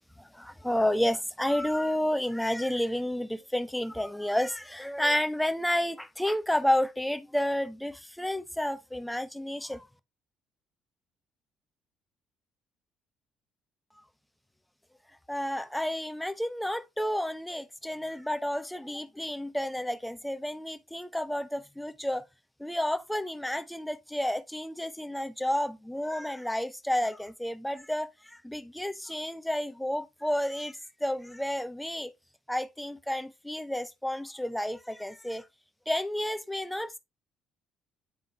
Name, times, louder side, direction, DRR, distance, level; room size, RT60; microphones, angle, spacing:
voice 1, 0.2-9.9 15.3-22.2 22.6-32.1 32.5-35.4 35.9-37.0, left 1 dB, 5° left, 0.9 m, -31 dB
9.7 x 3.7 x 3.1 m
hypercardioid pair, 55°, 0 cm